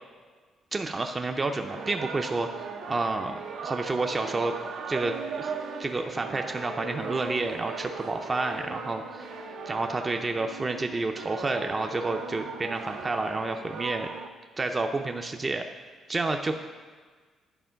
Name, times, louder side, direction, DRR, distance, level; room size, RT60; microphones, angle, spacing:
voice 1, 0.7-4.5 4.9-5.5 5.8-9.3 9.7-14.1 14.6-15.6 16.1-16.6, right 3 dB, 25° right, 5 dB, 0.5 m, -30 dB
sound 1, 1.7-14.3, right 5 dB, 80° right, 0.8 m, -38 dB
10.0 x 4.3 x 5.7 m, 1.5 s
cardioid pair, 90°, 0 cm